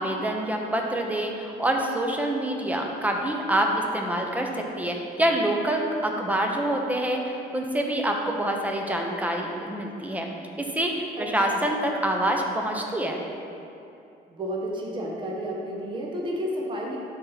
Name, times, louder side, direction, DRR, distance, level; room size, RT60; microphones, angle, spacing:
voice 1, 0.0-10.3 10.6-13.2, right 1 dB, 10° right, 1 dB, 1.0 m, -26 dB
voice 2, 11.2-11.7 14.3-17.0, equal, 30° right, -2 dB, 1.2 m, -31 dB
12.0 x 4.4 x 4.1 m, 2.7 s
cardioid pair, 110°, 17 cm